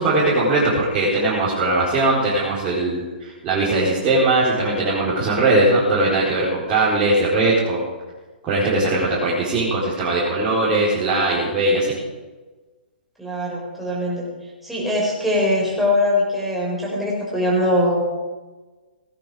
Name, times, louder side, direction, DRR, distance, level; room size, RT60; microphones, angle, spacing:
voice 1, 0.0-7.8 8.4-11.9, right 2 dB, 25° right, -8 dB, 4.7 m, -20 dB
voice 2, 13.2-14.2 14.6-18.0, left 1 dB, ahead, -5 dB, 5.5 m, -21 dB
18.5 x 11.0 x 5.2 m, 1.3 s
hypercardioid pair, 130°, 5 cm